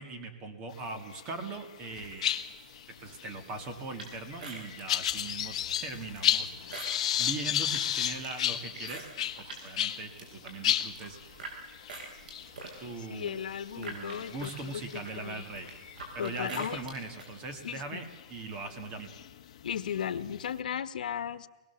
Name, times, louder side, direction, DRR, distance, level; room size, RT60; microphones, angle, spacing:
voice 1, 0.0-2.3 3.0-6.8 7.2-11.4 12.8-13.4 13.8-15.7 16.1-19.2, right 3 dB, 20° right, 7 dB, 2.1 m, -40 dB
sound 1, 1.1-1.6 1.8-10.0 10.4-10.5 10.6-16.5 17.0-17.3 18.1-18.2 18.8-20.6, left 11 dB, 45° left, 1.3 m, -33 dB
sound 2, 2.3-16.9, right 1 dB, 40° right, 4.8 m, -61 dB
sound 3, 4.0-9.6 10.0-11.5 11.9-17.3, right 3 dB, 85° right, 6.8 m, -45 dB
voice 2, 13.1-14.5 14.9-15.4 16.2-16.8 17.6-18.0 19.6-21.5, left 8 dB, 85° left, 12 dB, 1.3 m, -35 dB
24.0 x 21.0 x 7.2 m, 1.1 s
hypercardioid pair, 180°, 4 cm